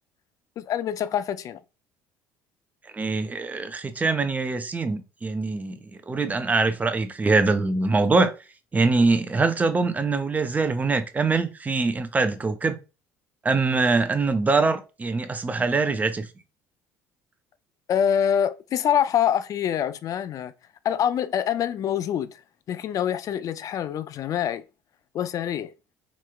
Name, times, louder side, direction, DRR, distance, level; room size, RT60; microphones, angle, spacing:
voice 1, 0.6-1.6 17.9-20.5 20.8-22.3 22.7-24.6 25.1-25.7, left 9 dB, 50° left, 0.3 m, -25 dB
voice 2, 2.9-8.3 8.7-12.8 13.4-16.3, right 3 dB, 20° right, 0.5 m, -23 dB
3.2 x 3.1 x 2.3 m
supercardioid pair, 85°, 7 cm